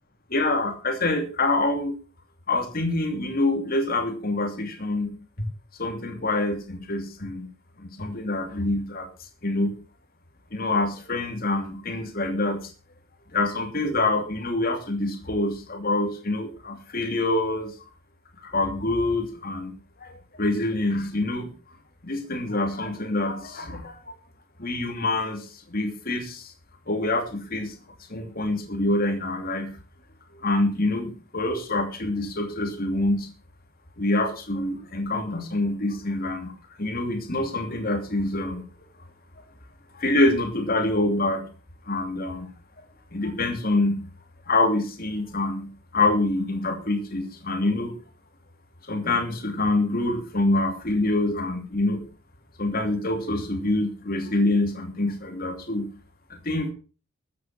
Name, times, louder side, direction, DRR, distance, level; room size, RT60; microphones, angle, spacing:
voice 1, 0.3-1.9 2.5-5.1 5.8-7.5 7.8-9.1 9.4-9.7 10.5-12.7 13.3-17.7 18.4-19.7 20.0-21.5 22.0-24.0 24.6-26.5 26.9-27.7 28.1-29.8 30.4-33.3 34.0-36.5 36.8-38.6 39.9-41.5 41.9-42.5 43.1-44.0 44.5-48.0 48.9-52.0 52.6-55.9 56.3-56.7, left 2 dB, 45° left, 5 dB, 2.8 m, -26 dB
14.0 x 9.3 x 6.1 m, 0.36 s
head